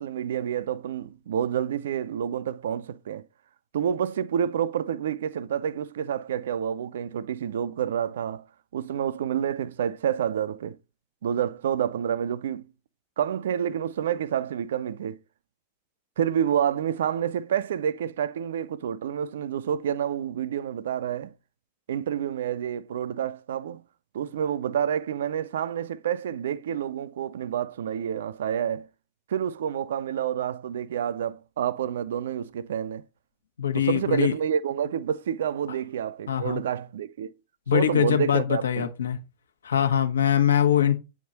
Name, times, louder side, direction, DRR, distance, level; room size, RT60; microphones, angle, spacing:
voice 1, 0.0-3.3 3.7-8.4 8.7-10.8 11.2-12.6 13.2-15.2 16.2-21.3 21.9-23.8 24.1-28.9 29.3-33.0 33.7-37.3 37.7-38.9, right 9 dB, 60° right, 0.4 m, -28 dB
voice 2, 33.6-34.3 36.3-36.6 37.7-39.2 39.6-41.0, left 9 dB, 70° left, 1.0 m, -23 dB
9.0 x 3.6 x 4.0 m
figure-of-eight pair, 90°, 0 cm